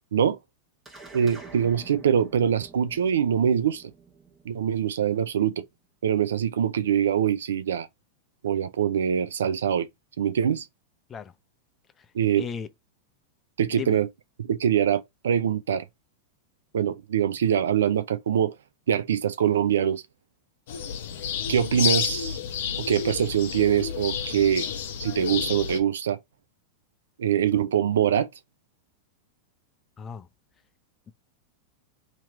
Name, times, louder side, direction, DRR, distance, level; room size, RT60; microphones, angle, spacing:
sound 1, 0.8-5.5, right 4 dB, 15° right, 1.3 m, -48 dB
voice 1, 1.1-3.9 4.5-5.7 6.0-7.9 8.4-9.9 10.2-10.7 12.1-12.5 13.6-14.1 14.4-15.9 16.7-18.5 18.9-20.0 21.5-22.4 22.8-24.7 25.0-26.2 27.2-28.3, right 9 dB, 80° right, 0.5 m, -24 dB
voice 2, 12.4-12.7 13.7-14.0 30.0-30.3, left 7 dB, 25° left, 0.6 m, -35 dB
sound 2, 20.7-25.8, left 8 dB, 70° left, 0.9 m, -30 dB
3.0 x 3.0 x 3.8 m
hypercardioid pair, 105°, 0 cm